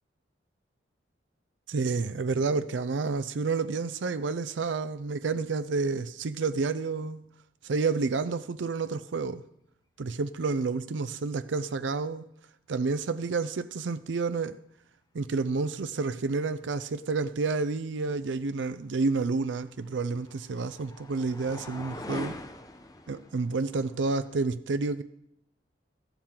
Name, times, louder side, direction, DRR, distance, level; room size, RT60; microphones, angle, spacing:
voice 1, 1.7-7.2 7.6-9.4 10.0-12.2 12.7-14.6 15.1-22.4 23.1-25.0, right 4 dB, 80° right, 0.5 m, -29 dB
sound 1, 19.3-24.5, left 1 dB, 20° left, 0.7 m, -44 dB
14.0 x 11.5 x 3.8 m
head